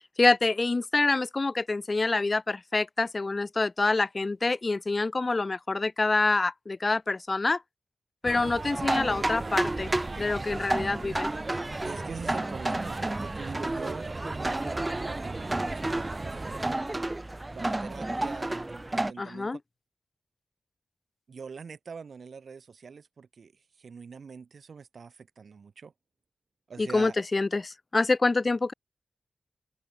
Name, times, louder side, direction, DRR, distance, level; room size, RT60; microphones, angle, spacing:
voice 1, 0.2-7.6 8.2-9.9 10.2-11.3 19.2-19.6 26.8-28.7, left 3 dB, 40° left, 0.6 m, -26 dB
sound 1, 8.2-16.8, right 3 dB, 40° right, 4.8 m, -37 dB
sound 2, 8.7-19.1, right 2 dB, 20° right, 0.6 m, -32 dB
voice 2, 11.8-17.3 17.5-19.6 21.3-25.9 26.7-27.2, right 5 dB, 75° right, 3.6 m, -44 dB
open air
cardioid pair, 70°, 0 cm